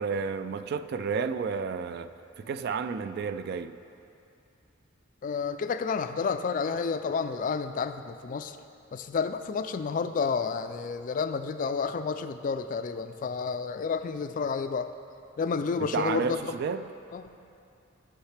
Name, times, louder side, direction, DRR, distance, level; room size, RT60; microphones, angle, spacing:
voice 1, 0.0-2.1 2.4-3.8 15.9-16.8, right 5 dB, 50° right, 11 dB, 0.3 m, -31 dB
voice 2, 5.2-8.6 8.9-14.9 15.4-16.6 17.1-17.3, left 5 dB, 40° left, 9 dB, 0.3 m, -30 dB
14.5 x 5.6 x 3.3 m, 2.6 s
head